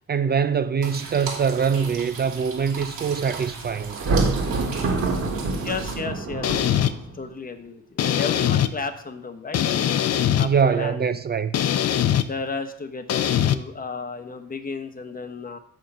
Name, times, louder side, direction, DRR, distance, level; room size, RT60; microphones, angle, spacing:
voice 1, 0.1-4.0 10.4-11.6, right 6 dB, 35° right, 0.5 m, -23 dB
sound 1, 0.8-5.9, right 4 dB, 75° right, 2.6 m, -36 dB
Thunder, 3.9-7.3, right 3 dB, 50° right, 1.9 m, -26 dB
voice 2, 5.6-6.8 7.1-9.6 10.4-11.2 12.2-15.6, left 4 dB, 30° left, 1.0 m, -33 dB
sound 2, 6.4-6.9 8.0-8.7 9.5-10.5 11.5-12.3 13.1-13.6, left 10 dB, 55° left, 0.6 m, -21 dB
6.5 x 6.4 x 5.6 m
cardioid pair, 90°, 30 cm